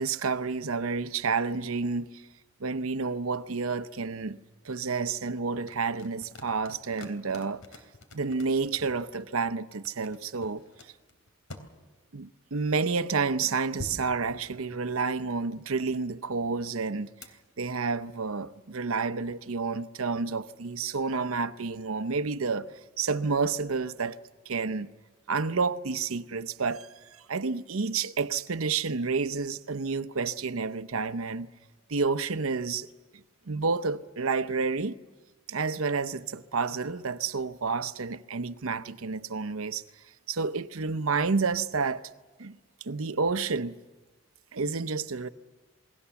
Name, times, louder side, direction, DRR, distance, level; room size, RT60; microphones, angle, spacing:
voice 1, 0.0-2.2 2.6-7.6 8.1-10.6 12.1-17.1 17.6-22.7 23.0-24.2 24.5-24.9 25.3-26.9 27.3-31.5 31.9-32.9 33.5-35.0 35.5-39.8 40.3-42.1 42.4-43.7 44.5-45.3, right 4 dB, 80° right, 0.8 m, -30 dB
sound 1, 5.6-9.2 9.7-11.7 13.8-15.2 17.2-17.3, left 1 dB, 80° left, 3.2 m, -46 dB
28.5 x 21.0 x 7.1 m
head